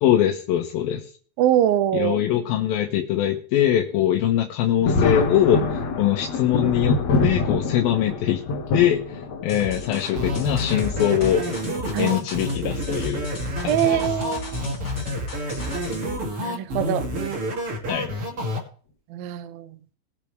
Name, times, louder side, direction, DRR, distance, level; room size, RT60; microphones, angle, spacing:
voice 1, 0.0-1.1 1.9-8.4 8.7-11.4 12.0-13.3 13.6-14.0 17.9-18.1, left 11 dB, 85° left, 2.9 m, -22 dB
voice 2, 1.4-2.2 11.9-12.2 13.7-14.6 16.4-17.1 19.1-19.8, right 11 dB, 80° right, 2.5 m, -23 dB
Thunder, 4.8-11.9 12.9-13.0 14.4-14.7 15.1-15.2 17.1-17.3 18.0-18.4, left 3 dB, 55° left, 2.4 m, -26 dB
sound 1, 9.5-16.2, left 2 dB, 35° left, 3.7 m, -35 dB
sound 2, 10.2-18.6, equal, 40° right, 3.0 m, -29 dB
21.0 x 7.5 x 3.3 m
omnidirectional pair, 4.2 m